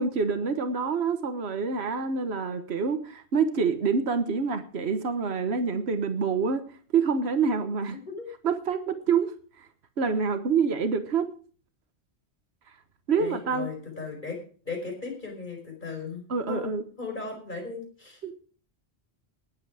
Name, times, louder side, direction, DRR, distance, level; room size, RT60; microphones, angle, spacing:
voice 1, 0.0-6.6 6.9-8.0 8.4-9.7 10.0-11.3 13.1-13.7 16.3-16.8 18.2-18.3, right 5 dB, 75° right, 9 dB, 1.5 m, -27 dB
voice 2, 13.2-14.4 14.7-18.2, left 4 dB, 45° left, 1 dB, 5.1 m, -37 dB
19.5 x 8.2 x 4.9 m, 0.42 s
omnidirectional pair, 1.1 m